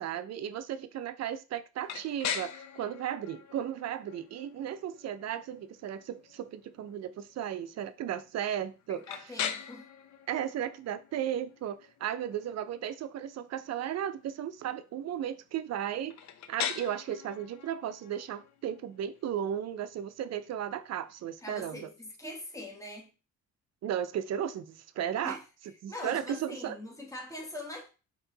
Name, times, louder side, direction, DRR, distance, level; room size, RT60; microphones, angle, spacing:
voice 1, 0.0-9.1 10.3-16.2 16.5-21.9 23.8-25.4 25.8-26.8, right 10 dB, 60° right, 0.6 m, -35 dB
sound 1, 1.8-21.6, left 9 dB, 65° left, 0.6 m, -43 dB
voice 2, 8.9-9.9 21.4-23.1 25.2-25.4 25.9-27.9, left 1 dB, 10° left, 1.4 m, -42 dB
4.5 x 3.0 x 3.8 m
cardioid pair, 90°, 30 cm